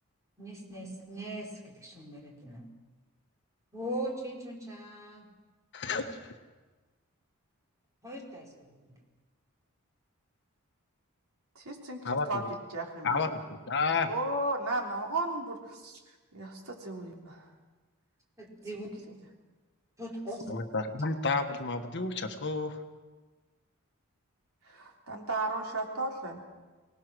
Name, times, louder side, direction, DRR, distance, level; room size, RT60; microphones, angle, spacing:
voice 1, 0.4-2.6 3.7-5.3 5.9-6.0 8.0-8.9 18.4-18.9 20.0-20.4, right 1 dB, 15° right, -2 dB, 4.6 m, -40 dB
voice 2, 5.7-6.1 12.0-12.4 13.0-13.3 13.7-14.1 20.5-22.8, left 4 dB, 55° left, 6 dB, 1.5 m, -30 dB
voice 3, 11.5-12.4 12.7-13.3 14.1-16.0 16.3-17.5 18.7-19.2 24.7-26.4, right 2 dB, 75° right, 1 dB, 3.4 m, -35 dB
24.5 x 19.0 x 6.3 m, 1.3 s
head